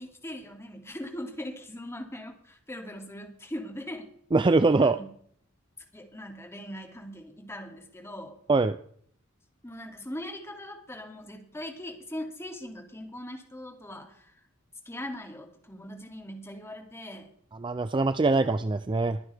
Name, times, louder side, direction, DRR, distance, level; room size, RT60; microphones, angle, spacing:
voice 1, 0.0-4.1 4.8-5.1 5.9-8.4 9.6-14.3 14.8-17.3, left 1 dB, 10° left, 3 dB, 2.6 m, -40 dB
voice 2, 4.3-5.0 8.5-8.8 17.6-19.2, right 3 dB, 20° right, 12 dB, 0.4 m, -23 dB
22.5 x 9.3 x 3.5 m, 0.62 s
head